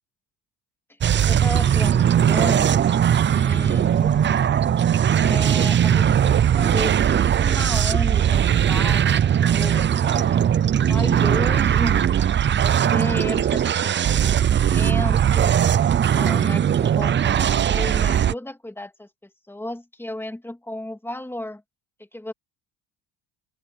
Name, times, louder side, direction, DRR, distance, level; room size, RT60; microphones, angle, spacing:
sound 1, 1.0-18.3, right 9 dB, 25° right, 0.5 m, -19 dB
voice 1, 1.2-2.8 3.3-4.4 5.2-10.4 10.9-12.3 12.6-15.6 16.1-21.6 22.1-22.3, left 1 dB, 5° left, 2.6 m, -34 dB
open air
cardioid pair, 125°, 45 cm